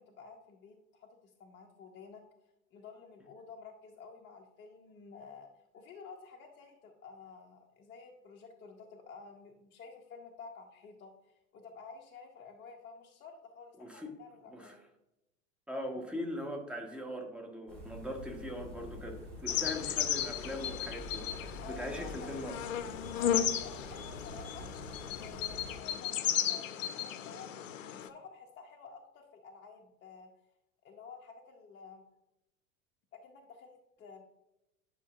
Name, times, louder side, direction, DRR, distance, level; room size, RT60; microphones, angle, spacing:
voice 1, 0.0-2.2 2.7-5.5 5.7-14.8 21.5-22.4 23.2-24.7 25.1-27.6 27.8-30.3 30.8-32.0 33.1-34.2, left 5 dB, 25° left, 1 dB, 0.7 m, -51 dB
voice 2, 13.8-14.1 14.5-14.8 15.7-22.6, left 1 dB, 5° right, 3 dB, 1.1 m, -40 dB
sound 1, 17.7-25.8, equal, 85° right, 2.7 m, -47 dB
sound 2, 19.5-28.1, left 9 dB, 65° left, 0.6 m, -35 dB
9.9 x 5.6 x 2.4 m, 0.89 s
figure-of-eight pair, 80°, 42 cm